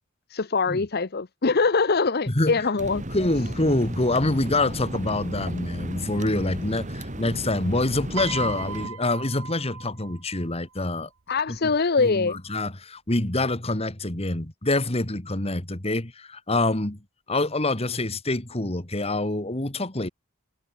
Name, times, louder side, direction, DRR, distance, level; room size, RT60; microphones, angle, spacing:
voice 1, 0.3-3.0 11.3-12.4, left 4 dB, 50° left, 0.8 m, -23 dB
voice 2, 2.3-2.7 3.1-11.1 12.0-17.0 17.3-20.1, left 2 dB, 30° left, 2.1 m, -26 dB
sound 1, 2.8-8.9, right 1 dB, 35° right, 3.7 m, -35 dB
Piano, 8.2-10.5 11.6-11.8, right 6 dB, 80° right, 1.1 m, -36 dB
head